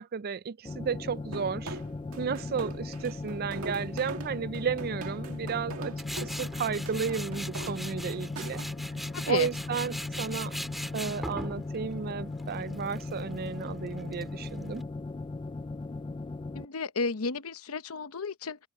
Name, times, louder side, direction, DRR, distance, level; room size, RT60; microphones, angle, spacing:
voice 1, 0.0-1.8 2.2-8.6 9.3-10.6 10.9-14.9, right 6 dB, 45° right, 0.4 m, -33 dB
sound 1, 0.6-16.7, left 3 dB, 20° left, 0.3 m, -38 dB
sound 2, 1.3-8.7, right 3 dB, 70° right, 2.1 m, -43 dB
Tools, 6.0-14.8, equal, ahead, 1.9 m, -41 dB
voice 2, 9.1-9.5 16.5-18.6, left 4 dB, 75° left, 0.9 m, -32 dB
head